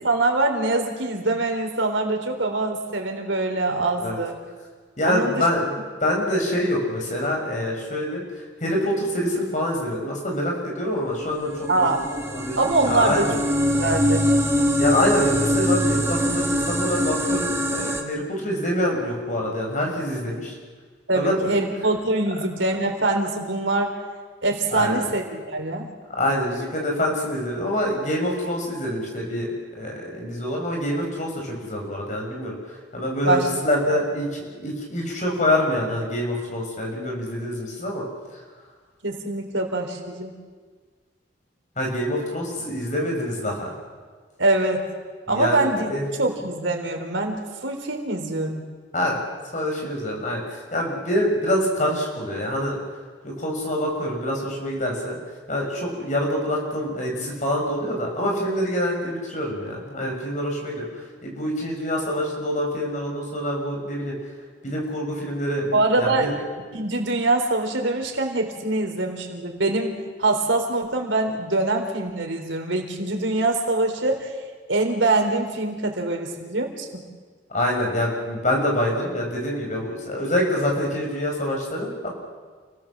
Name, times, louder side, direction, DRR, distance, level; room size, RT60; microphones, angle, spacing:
voice 1, 0.0-4.4 5.0-5.5 11.7-12.0 12.6-13.3 13.7-14.3 21.1-24.0 24.4-25.9 33.3-33.5 33.9-34.0 39.0-40.3 44.4-44.9 45.3-45.9 46.2-48.6 65.7-66.3 66.7-74.3 74.7-77.0, right 2 dB, 90° right, 3 dB, 3.8 m, -24 dB
voice 2, 5.0-13.4 14.8-20.5 21.1-21.6 24.7-25.0 26.1-38.1 38.3-38.4 41.8-43.7 45.3-46.1 48.9-49.2 49.5-52.8 53.2-55.2 55.5-64.1 64.6-66.3 77.5-82.1, left 1 dB, 40° left, 0 dB, 6.4 m, -26 dB
sound 1, 11.2-18.0, equal, 15° right, 2.3 m, -23 dB
29.0 x 18.0 x 7.5 m, 1.5 s
head